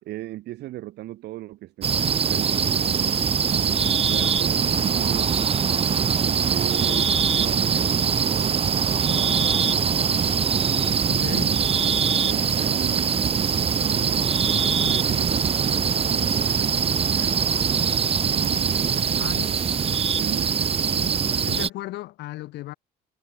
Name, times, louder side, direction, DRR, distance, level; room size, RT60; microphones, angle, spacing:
voice 1, 0.0-5.4 6.2-10.4 11.0-11.7 12.2-17.4 18.3-19.6 20.0-21.2, right 16 dB, 75° right, 5.3 m, -37 dB
sound 1, 1.8-21.7, right 7 dB, 35° right, 1.3 m, -22 dB
voice 2, 11.1-11.6 19.2-19.5 21.4-22.7, left 17 dB, 80° left, 7.4 m, -35 dB
cardioid pair, 110°, 17 cm